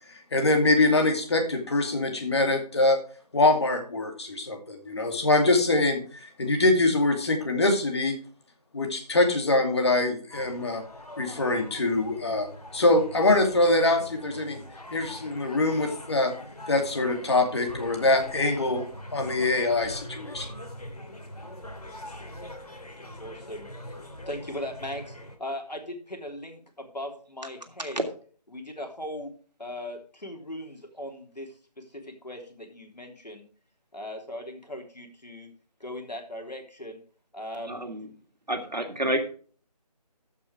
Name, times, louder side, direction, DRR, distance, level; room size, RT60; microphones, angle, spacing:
voice 1, 0.3-3.0 3.3-8.2 8.7-10.8 11.2-12.5 12.7-14.6 14.9-16.3 16.7-18.9 19.1-20.5, left 2 dB, 40° left, 4 dB, 2.5 m, -24 dB
sound 1, 10.3-25.4, left 1 dB, 60° left, 3.0 m, -43 dB
voice 2, 23.2-28.0 28.5-29.3 29.6-33.5 33.9-35.5 35.8-37.0 37.3-37.8, left 1 dB, 80° left, 3 dB, 3.4 m, -39 dB
voice 3, 37.7-38.1 38.5-39.3, right 1 dB, 80° right, 4 dB, 2.7 m, -28 dB
13.5 x 6.1 x 4.7 m, 0.42 s
figure-of-eight pair, 160°, 21 cm